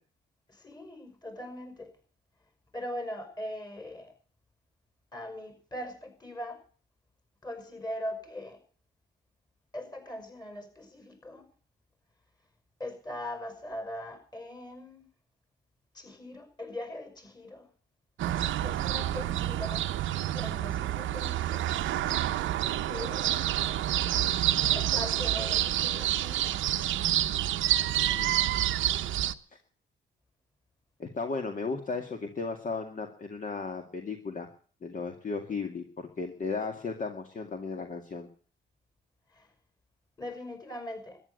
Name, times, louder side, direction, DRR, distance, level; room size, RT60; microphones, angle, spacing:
voice 1, 0.5-1.9 2.7-4.1 5.1-6.6 7.4-8.6 9.7-11.5 12.8-15.0 15.9-17.7 18.2-19.9 20.3-21.7 22.9-23.8 24.7-26.6 39.3-39.5 40.2-41.2, left 1 dB, 20° left, 7 dB, 5.9 m, -41 dB
sound 1, 18.2-29.3, right 13 dB, 80° right, 0.8 m, -28 dB
voice 2, 28.0-28.4 31.0-34.5 34.8-38.3, left 4 dB, 40° left, 5 dB, 2.2 m, -35 dB
13.5 x 10.5 x 7.9 m, 0.43 s
cardioid pair, 90°, 20 cm